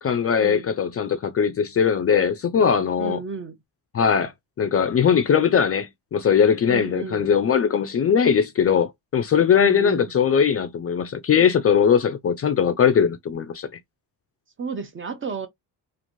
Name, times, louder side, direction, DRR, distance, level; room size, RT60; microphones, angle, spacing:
voice 1, 0.0-3.2 3.9-4.3 4.6-13.7, left 7 dB, 35° left, 0.4 m, -20 dB
voice 2, 3.0-3.6 6.6-7.3 9.5-10.1 14.6-15.5, right 4 dB, 30° right, 0.4 m, -32 dB
3.0 x 2.5 x 2.5 m
cardioid pair, 130°, 45 cm